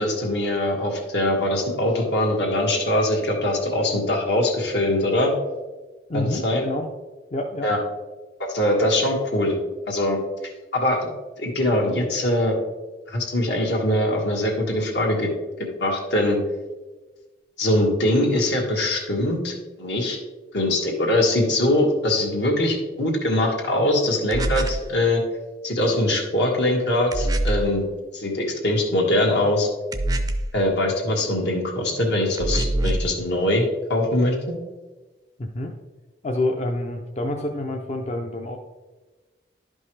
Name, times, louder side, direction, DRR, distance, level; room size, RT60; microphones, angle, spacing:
voice 1, 0.0-5.3 6.1-6.6 7.6-7.8 8.5-9.6 9.9-10.2 10.7-11.1 11.4-12.6 13.1-15.3 15.8-16.4 17.6-20.2 20.5-25.2 25.6-27.8 28.1-29.7 30.5-34.5, left 1 dB, 75° left, -1 dB, 1.7 m, -22 dB
voice 2, 6.1-6.9 7.3-7.7 35.4-35.7 36.2-38.6, left 1 dB, 40° left, 2 dB, 0.5 m, -27 dB
sound 1, 24.3-24.9 27.1-27.7 29.9-30.6 32.4-33.1, right 1 dB, 20° right, 0.4 m, -24 dB
11.0 x 5.4 x 3.3 m, 1.2 s
head